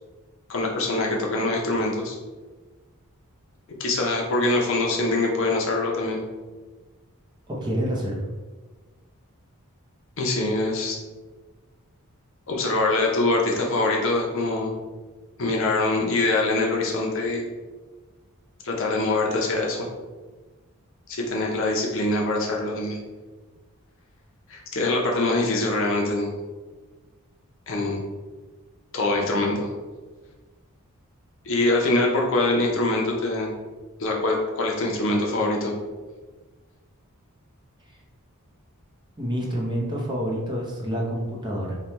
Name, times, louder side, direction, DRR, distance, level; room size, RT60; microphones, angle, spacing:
voice 1, 0.5-2.2 3.8-6.2 10.2-11.0 12.5-14.7 15.4-17.5 18.6-19.9 21.1-23.0 24.5-26.3 27.7-28.0 28.9-29.7 31.4-33.5 34.0-35.7, left 2 dB, 60° left, -1 dB, 0.7 m, -24 dB
voice 2, 7.5-8.3 39.2-41.8, equal, 20° right, -3 dB, 0.6 m, -28 dB
3.2 x 2.2 x 4.0 m, 1.3 s
head